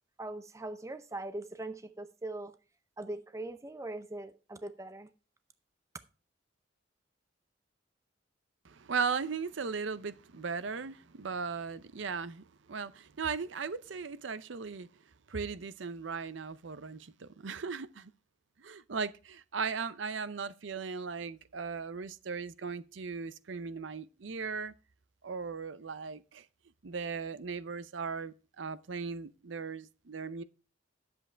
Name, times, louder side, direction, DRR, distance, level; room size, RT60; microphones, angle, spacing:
voice 1, 0.2-2.5 3.0-5.1, right 2 dB, 15° right, 0.5 m, -41 dB
voice 2, 8.6-14.9 15.3-18.1 18.6-24.7 25.2-26.4 26.8-30.4, right 5 dB, 75° right, 0.6 m, -37 dB
10.0 x 7.8 x 4.5 m
head